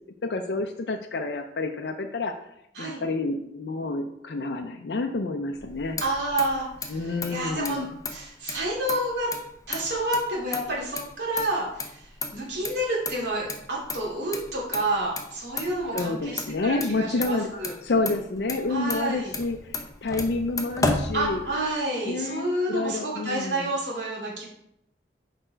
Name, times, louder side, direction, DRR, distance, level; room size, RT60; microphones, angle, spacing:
voice 1, 0.2-2.4 2.8-6.0 6.9-7.9 15.9-17.5 17.8-21.4 22.1-23.7, left 3 dB, 65° left, 4 dB, 0.5 m, -29 dB
Motor vehicle (road), 5.6-21.8, left 3 dB, 20° left, 0.8 m, -35 dB
voice 2, 6.0-9.3 9.7-17.7 18.7-19.3 21.1-24.5, right 1 dB, 75° right, -4 dB, 2.6 m, -29 dB
6.7 x 5.0 x 4.4 m, 0.79 s
head